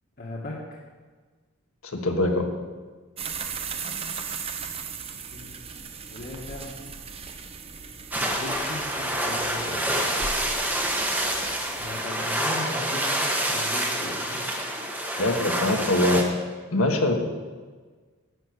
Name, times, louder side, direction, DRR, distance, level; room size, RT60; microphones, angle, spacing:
voice 1, 0.2-0.8 4.6-4.9 5.3-5.5 6.1-6.7 8.2-10.1 11.8-14.4, left 1 dB, 45° left, -4 dB, 1.6 m, -38 dB
voice 2, 1.8-2.5 15.2-16.2 16.7-17.1, left 1 dB, 80° left, 3 dB, 1.5 m, -23 dB
sound 1, 3.2-12.0, right 5 dB, 25° right, 0.7 m, -37 dB
sound 2, 8.1-16.2, right 1 dB, 10° right, 1.1 m, -27 dB
11.0 x 6.2 x 8.2 m, 1.4 s
head